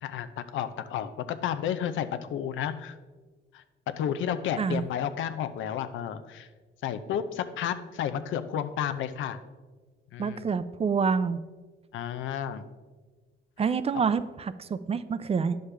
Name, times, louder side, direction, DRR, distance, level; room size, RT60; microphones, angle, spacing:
voice 1, 0.0-3.0 3.5-3.6 4.0-6.5 6.8-9.4 10.1-10.5 11.9-12.6, left 9 dB, 80° left, 11 dB, 0.6 m, -32 dB
voice 2, 10.2-11.4 13.6-15.6, right 5 dB, 30° right, 14 dB, 0.4 m, -27 dB
9.8 x 6.5 x 3.3 m, 1.3 s
cardioid pair, 90°, 20 cm